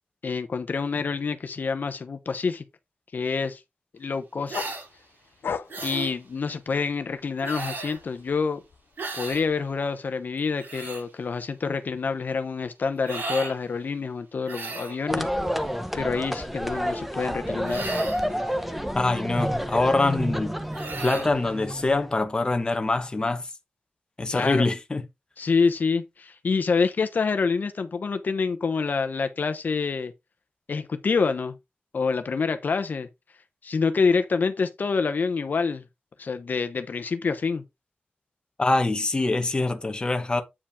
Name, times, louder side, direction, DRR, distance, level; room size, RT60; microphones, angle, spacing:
voice 1, 0.2-2.6 3.1-3.6 3.9-4.6 5.8-8.6 9.2-15.3 15.9-17.9 24.3-24.7 25.4-30.1 30.7-31.6 31.9-33.1 33.6-35.8 36.2-37.6, left 5 dB, 55° left, 0.9 m, -27 dB
sound 1, 4.5-7.2 7.6-9.5, left 6 dB, 80° left, 0.6 m, -37 dB
sound 2, 4.5-4.9 5.7-6.1 7.4-8.0 9.0-9.4 10.4-11.0 13.0-13.6 14.4-15.0 17.6-18.3 20.7-21.3, right 3 dB, 75° right, 3.2 m, -34 dB
sound 3, 15.1-22.2, equal, 5° right, 0.8 m, -29 dB
voice 2, 18.9-20.6 21.0-23.5 24.2-25.0 38.6-40.4, left 2 dB, 25° left, 1.0 m, -24 dB
8.5 x 5.1 x 3.6 m
wide cardioid pair, 160°, 4 cm